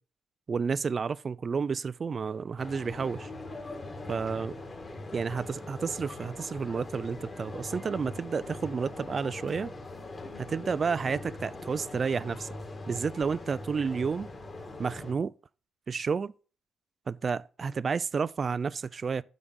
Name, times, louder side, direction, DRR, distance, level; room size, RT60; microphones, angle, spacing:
voice 1, 0.5-3.3 4.1-4.5 5.1-9.7 10.4-12.5 12.9-14.3 14.8-15.3 15.9-16.3 17.1-19.2, right 5 dB, 35° right, 0.4 m, -31 dB
sound 1, 2.6-15.1, left 2 dB, 30° left, 2.1 m, -42 dB
8.8 x 5.2 x 6.2 m
cardioid pair, 120°, 0 cm